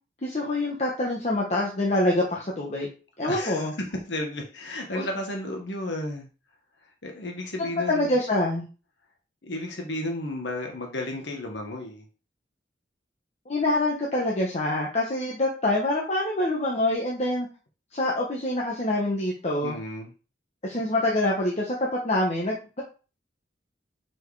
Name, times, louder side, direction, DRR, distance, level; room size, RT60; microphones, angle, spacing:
voice 1, 0.2-2.9 3.2-3.7 4.9-5.1 7.9-8.7 13.5-17.5 17.9-19.8 20.6-22.8, left 1 dB, 40° left, -2 dB, 1.2 m, -25 dB
voice 2, 3.2-3.7 4.1-6.3 7.0-8.2 9.4-12.0 19.6-20.1, left 1 dB, 80° left, 1 dB, 1.3 m, -33 dB
5.1 x 4.6 x 4.8 m, 0.35 s
head